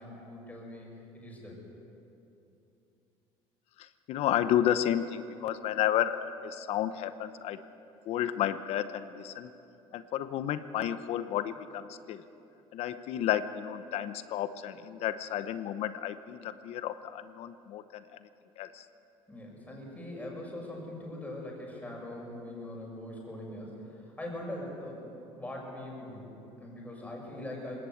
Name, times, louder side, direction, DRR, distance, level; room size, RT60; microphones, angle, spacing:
voice 1, 0.0-1.6 19.3-27.9, left 1 dB, 15° left, -1 dB, 6.8 m, -42 dB
voice 2, 3.8-7.6 8.1-9.5 9.9-12.2 12.7-18.3 18.6-18.8, left 11 dB, 65° left, 12 dB, 0.9 m, -32 dB
20.0 x 17.5 x 8.0 m, 2.8 s
supercardioid pair, 95°, 11 cm